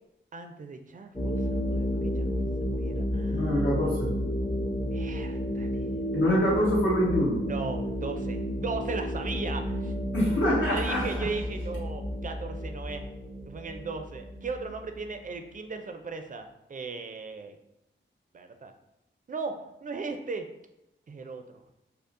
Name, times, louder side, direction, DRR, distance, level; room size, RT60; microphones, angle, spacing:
voice 1, 0.3-3.8 4.9-5.8 7.5-9.9 10.6-13.1 13.5-17.6 18.3-18.7 19.3-20.5 21.1-21.4, right 4 dB, 40° right, 6 dB, 0.4 m, -37 dB
sound 1, 1.1-15.5, equal, 10° left, 0.5 m, -32 dB
voice 2, 3.3-4.1 6.1-7.4 10.1-11.3, equal, 75° left, -6 dB, 1.4 m, -25 dB
5.3 x 2.0 x 2.5 m, 0.89 s
wide cardioid pair, 95°, 20 cm